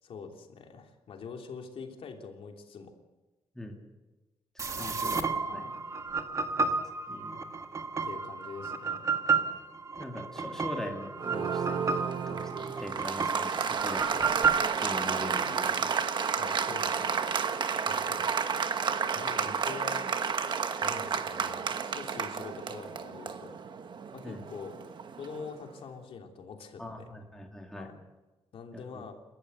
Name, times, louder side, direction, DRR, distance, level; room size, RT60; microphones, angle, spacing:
voice 1, 0.0-2.9 4.7-4.9 5.5-5.8 8.0-9.0 16.3-17.2 17.8-18.3 19.1-20.1 20.8-23.6 24.1-24.8 25.2-27.1 27.7-28.0 28.5-29.1, left 5 dB, 60° left, 3 dB, 3.1 m, -44 dB
voice 2, 4.5-5.2 5.5-5.7 6.6-6.7 7.1-7.4 10.0-11.9 12.3-12.5 12.8-14.3 14.8-15.9 24.2-24.4 26.8-27.9 28.7-29.0, left 1 dB, 5° left, 1 dB, 2.6 m, -41 dB
sound 1, 4.6-15.4, right 4 dB, 30° right, 1.5 m, -32 dB
Applause, 11.2-25.6, right 6 dB, 45° right, 1.2 m, -31 dB
30.0 x 14.0 x 8.0 m, 1.1 s
wide cardioid pair, 175°, 11 cm